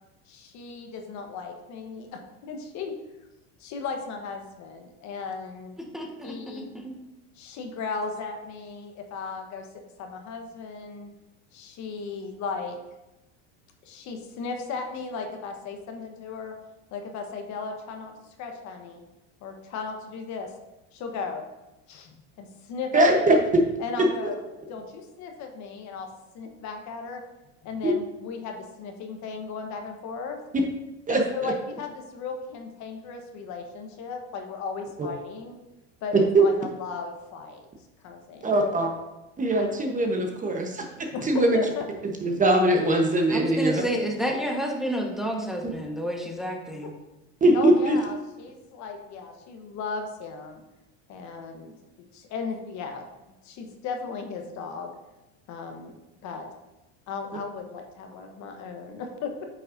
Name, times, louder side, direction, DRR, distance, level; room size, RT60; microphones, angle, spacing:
voice 1, 0.3-2.9 3.6-5.8 6.2-6.7 7.4-11.1 11.5-12.8 13.8-16.5 16.9-19.0 19.4-20.5 20.9-21.4 21.9-23.4 23.8-24.4 24.7-26.1 26.3-27.2 27.6-30.4 31.1-35.6 36.0-37.7 38.0-38.6 41.1-41.8 46.8-46.9 47.5-50.6 51.1-51.7 52.1-53.0 53.4-54.9 55.5-55.9 56.2-56.5 57.1-59.5, left 4 dB, 50° left, 4 dB, 1.1 m, -36 dB
voice 2, 5.9-6.9 43.3-46.9, equal, ahead, 0 dB, 1.1 m, -30 dB
voice 3, 22.9-23.4 24.0-24.1 27.8-28.0 31.1-31.5 35.0-35.1 36.1-36.4 38.4-38.9 39.4-40.8 41.2-41.6 42.2-43.8 47.4-48.0, right 2 dB, 20° right, 2 dB, 1.0 m, -21 dB
8.8 x 5.5 x 2.6 m, 0.99 s
supercardioid pair, 105°, 36 cm